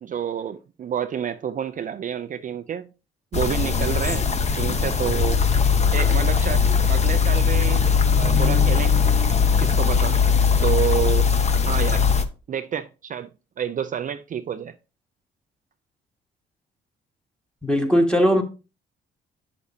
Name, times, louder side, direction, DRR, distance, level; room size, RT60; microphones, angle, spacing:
voice 1, 0.0-2.9 3.3-4.3 4.6-5.4 5.9-8.9 9.6-10.2 10.6-11.3 11.7-12.1 12.5-13.3 13.6-14.7, right 9 dB, 40° right, 0.4 m, -29 dB
sound 1, 3.3-12.3, left 6 dB, 35° left, 0.8 m, -20 dB
voice 2, 17.6-18.4, equal, 5° left, 1.7 m, -19 dB
8.4 x 6.5 x 2.7 m
cardioid pair, 90°, 20 cm